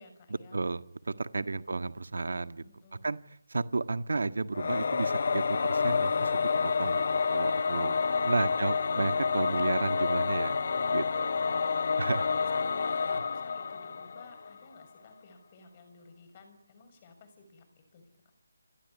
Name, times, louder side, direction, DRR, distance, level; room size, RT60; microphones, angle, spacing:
voice 1, 0.0-0.6 1.4-1.9 2.2-3.1 11.3-18.0, left 4 dB, 25° left, 9 dB, 6.5 m, -55 dB
voice 2, 0.5-2.6 3.0-3.2 3.5-7.9 8.2-10.6 10.9-11.3 12.0-12.2, right 3 dB, 70° right, 12 dB, 1.6 m, -32 dB
Singing / Musical instrument, 4.5-14.6, left 5 dB, 50° left, 1.2 m, -29 dB
28.0 x 21.5 x 9.6 m, 0.76 s
figure-of-eight pair, 170°, 0 cm